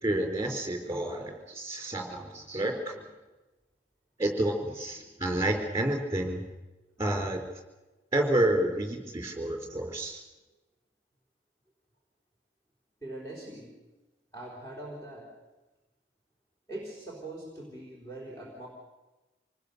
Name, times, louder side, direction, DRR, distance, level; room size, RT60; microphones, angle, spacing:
voice 1, 0.0-3.0 4.2-6.4 7.0-7.4 8.1-10.2, right 1 dB, 15° right, 3 dB, 3.8 m, -29 dB
voice 2, 13.0-13.8 14.3-15.4 16.7-18.7, right 1 dB, 15° left, -5 dB, 3.6 m, -42 dB
26.5 x 19.0 x 6.7 m, 1.1 s
head